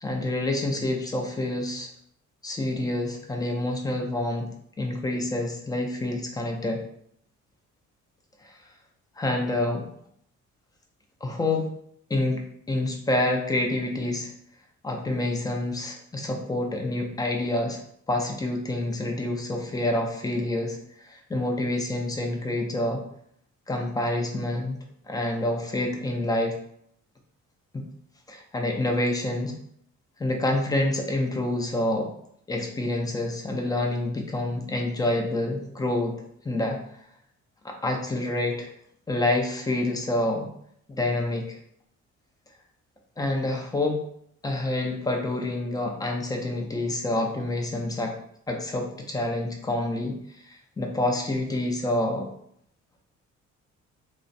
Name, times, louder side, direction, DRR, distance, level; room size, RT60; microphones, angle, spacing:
voice 1, 0.0-1.9 2.4-6.8 8.4-8.6 9.2-9.9 11.2-11.7 12.1-14.3 14.8-17.8 18.1-20.8 21.0-23.0 23.7-24.8 25.1-26.5 27.7-27.9 28.3-29.6 30.2-32.1 32.5-36.2 36.4-36.8 37.6-38.7 39.1-40.5 40.9-41.6 43.2-44.0 44.4-48.2 48.5-52.3, left 1 dB, 15° left, 2 dB, 0.4 m, -27 dB
2.4 x 2.0 x 2.5 m, 0.68 s
cardioid pair, 90°, 30 cm